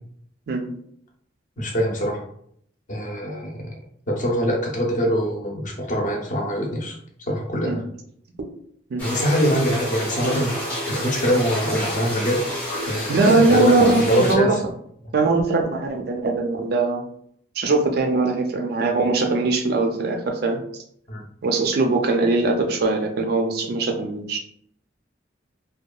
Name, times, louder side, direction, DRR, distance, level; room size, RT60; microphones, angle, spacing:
voice 1, 1.6-2.2 2.9-3.7 4.1-7.0 7.3-7.8 9.0-12.4 12.8-13.7 14.1-14.6 21.1-21.2, equal, 45° left, -1 dB, 0.6 m, -23 dB
sound 1, 9.0-14.3, equal, 10° left, 0.8 m, -29 dB
voice 2, 13.1-14.6 15.1-17.0 17.6-20.6 21.4-24.4, right 3 dB, 55° right, 4 dB, 0.4 m, -21 dB
2.7 x 2.2 x 2.3 m, 0.67 s
head